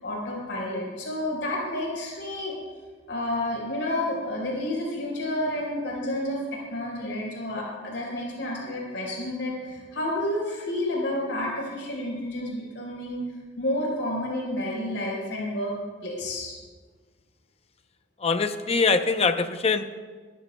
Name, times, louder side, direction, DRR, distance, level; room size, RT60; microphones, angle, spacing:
voice 1, 0.0-2.5 3.1-13.2 13.6-15.7 16.0-16.5, left 1 dB, 85° left, -3 dB, 4.7 m, -30 dB
voice 2, 18.2-19.8, left 4 dB, 35° left, 8 dB, 0.7 m, -23 dB
25.5 x 14.0 x 2.3 m, 1.5 s
head